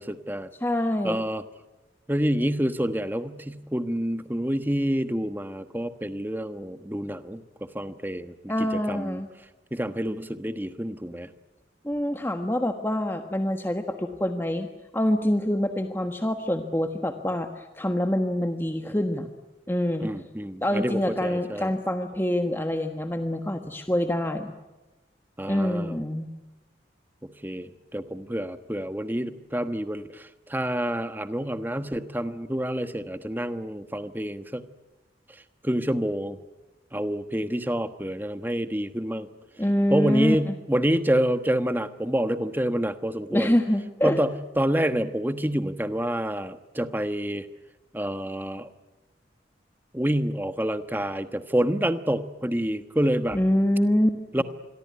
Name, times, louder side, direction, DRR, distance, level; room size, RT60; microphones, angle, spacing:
voice 1, 0.0-0.5 1.0-1.4 2.1-9.2 9.7-11.3 20.0-21.7 25.4-26.0 27.2-34.6 35.6-36.4 36.9-39.3 39.9-43.5 44.0-47.5 47.9-48.7 49.9-53.4 54.3-54.4, equal, 10° right, 10 dB, 1.2 m, -28 dB
voice 2, 0.6-1.2 8.5-9.3 11.8-14.7 14.9-19.3 19.7-20.1 20.6-24.5 25.5-26.3 39.6-40.5 43.3-44.2 53.3-54.4, left 1 dB, 10° left, 6 dB, 1.3 m, -25 dB
27.0 x 22.5 x 9.6 m, 1.1 s
head